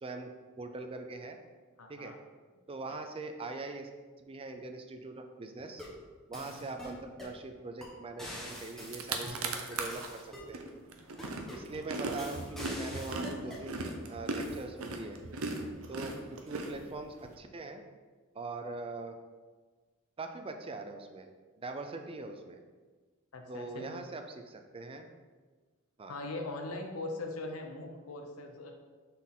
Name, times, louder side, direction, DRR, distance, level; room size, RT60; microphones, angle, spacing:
voice 1, 0.0-1.4 1.9-2.1 2.7-3.9 4.2-5.8 6.3-10.7 11.5-13.8 14.1-15.2 15.9-17.8 18.3-19.2 20.2-21.3 21.6-22.6 23.5-25.1 26.0-26.2, right 3 dB, 25° right, 6 dB, 0.4 m, -42 dB
voice 2, 1.8-2.2 6.3-6.7 23.3-23.9 26.1-28.7, left 2 dB, 85° left, 3 dB, 0.8 m, -41 dB
sound 1, 5.6-6.0 6.3-7.4 7.8-7.9 8.2-10.5 11.2-11.7 12.2-13.7, left 1 dB, ahead, 1.1 m, -45 dB
sound 2, 8.5-8.6 8.8-10.1 10.5-17.3, right 3 dB, 70° right, 0.6 m, -38 dB
6.2 x 4.1 x 3.7 m, 1.4 s
head